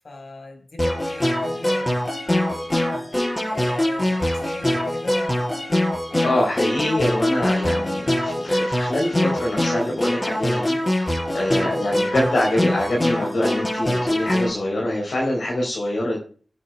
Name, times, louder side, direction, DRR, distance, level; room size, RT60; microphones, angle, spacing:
voice 1, 0.0-2.7 3.5-5.7 11.5-11.8, left 2 dB, 65° left, 4 dB, 4.4 m, -40 dB
sound 1, 0.8-14.5, left 1 dB, 25° left, 5.6 m, -23 dB
voice 2, 6.2-16.2, left 1 dB, 80° left, -2 dB, 3.7 m, -25 dB
21.5 x 8.6 x 2.3 m, 0.41 s
cardioid pair, 55°, 0 cm